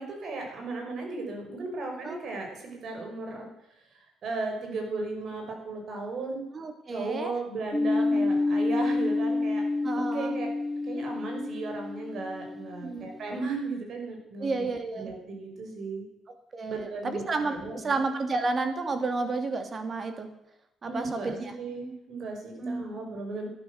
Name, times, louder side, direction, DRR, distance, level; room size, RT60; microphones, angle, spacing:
voice 1, 0.0-3.5 4.2-6.4 6.9-9.6 10.0-10.5 10.9-14.7 15.0-16.0 16.7-17.2 17.5-18.0 20.8-23.5, right 3 dB, 65° right, 2 dB, 5.6 m, -35 dB
voice 2, 6.5-7.3 8.1-8.3 9.8-10.3 12.8-13.1 14.4-15.1 16.5-20.3 20.8-21.5 22.6-22.9, right 3 dB, 40° right, 7 dB, 2.6 m, -31 dB
sound 1, 7.7-13.2, left 2 dB, 5° left, 1.4 m, -28 dB
13.5 x 12.0 x 6.5 m, 0.85 s
cardioid pair, 90°, 0 cm